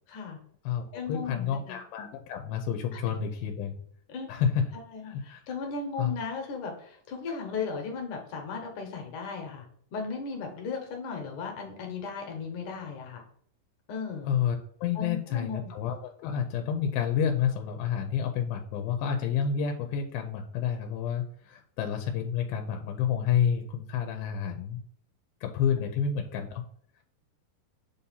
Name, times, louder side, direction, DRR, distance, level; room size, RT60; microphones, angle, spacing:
voice 1, 0.1-0.4 0.9-1.8 4.1-4.3 4.7-9.7 9.9-13.2 13.9-14.3 15.0-15.8 25.8-25.9, left 5 dB, 65° left, 2 dB, 2.2 m, -36 dB
voice 2, 0.7-3.7 4.3-4.6 5.1-5.4 6.0-6.1 14.3-24.8 25.4-26.6, left 8 dB, 90° left, 4 dB, 2.5 m, -29 dB
7.2 x 2.8 x 5.5 m, 0.63 s
omnidirectional pair, 4.2 m